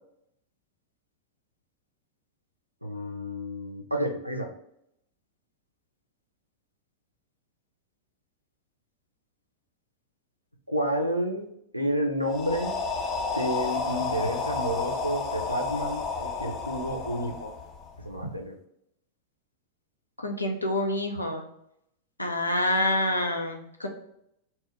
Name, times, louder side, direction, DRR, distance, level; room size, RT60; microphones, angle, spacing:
voice 1, 2.8-4.5 10.7-12.8 13.4-17.5 18.0-18.5, equal, 90° right, 2 dB, 0.5 m, -30 dB
sound 1, 12.3-18.2, left 4 dB, 30° left, 0.4 m, -31 dB
voice 2, 20.2-21.4 22.2-23.9, left 1 dB, 85° left, 3 dB, 0.5 m, -27 dB
2.8 x 2.2 x 3.4 m, 0.76 s
figure-of-eight pair, 90°, 0 cm